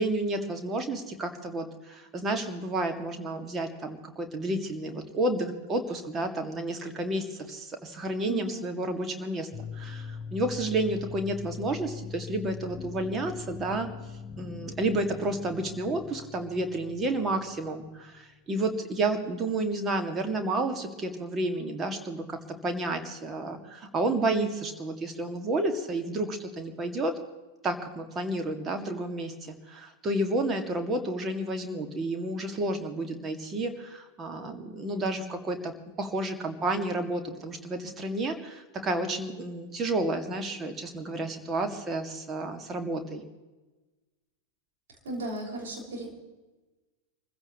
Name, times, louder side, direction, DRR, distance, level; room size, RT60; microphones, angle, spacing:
voice 1, 0.0-9.5 9.7-13.9 14.4-27.1 27.6-35.7 36.0-43.2, right 2 dB, 20° right, 5 dB, 2.3 m, -31 dB
voice 2, 8.3-8.7 45.0-46.2, right 1 dB, 60° right, -1 dB, 6.0 m, -36 dB
sound 1, 9.5-18.3, left 5 dB, 15° left, 4.1 m, -42 dB
26.0 x 16.0 x 3.2 m, 1.2 s
figure-of-eight pair, 90°, 0 cm